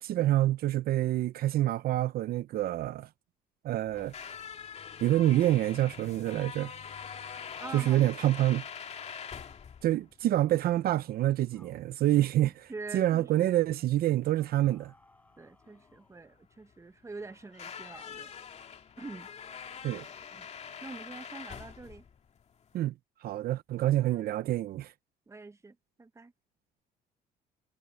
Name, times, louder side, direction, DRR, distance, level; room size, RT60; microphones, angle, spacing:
voice 1, 0.0-3.1 3.6-4.1 5.0-6.8 7.7-8.6 9.8-14.9 19.8-20.0 22.7-22.9 23.2-24.9, right 14 dB, 65° right, 0.7 m, -27 dB
sound 1, 3.9-22.8, left 7 dB, 40° left, 2.3 m, -45 dB
voice 2, 7.6-8.0 12.4-13.5 15.4-18.6 19.0-19.3 20.3-20.5 20.8-22.1 24.1-24.2 25.3-26.3, right 3 dB, 15° right, 1.2 m, -45 dB
sound 2, 8.9-9.6 10.0-10.2 10.5-10.7 11.0-11.3 11.5-11.8 12.2-12.5 12.9-13.1 13.5-13.8 14.4-16.4, left 1 dB, 10° left, 6.5 m, -65 dB
cardioid pair, 110°, 17 cm